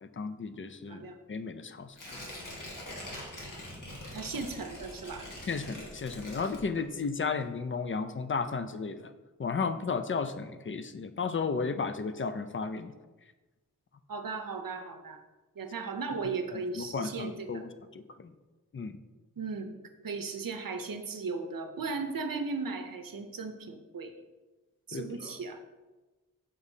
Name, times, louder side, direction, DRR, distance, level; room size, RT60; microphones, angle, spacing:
voice 1, 0.0-2.3 5.5-9.1 9.4-12.9 16.5-18.3 18.7-19.0 24.9-25.3, left 5 dB, 40° left, 10 dB, 0.4 m, -34 dB
Tearing, 1.9-7.1 7.4-7.5, left 1 dB, 70° left, 1.5 m, -44 dB
voice 2, 4.1-5.2 14.1-15.2 15.6-17.6 19.4-19.7 20.0-24.1 24.9-25.6, right 4 dB, 85° right, 6 dB, 0.6 m, -36 dB
6.9 x 5.1 x 2.7 m, 1.2 s
wide cardioid pair, 50°, 33 cm